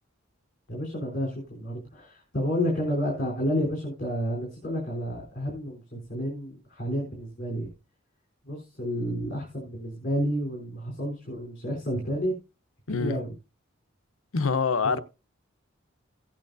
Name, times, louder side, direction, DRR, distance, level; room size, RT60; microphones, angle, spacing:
voice 1, 0.7-7.7 8.5-12.3 12.9-13.3 14.8-15.0, equal, 45° left, 3.8 m, -30 dB
voice 2, 14.3-15.0, left 5 dB, 85° left, 0.8 m, -25 dB
16.0 x 8.8 x 2.7 m
head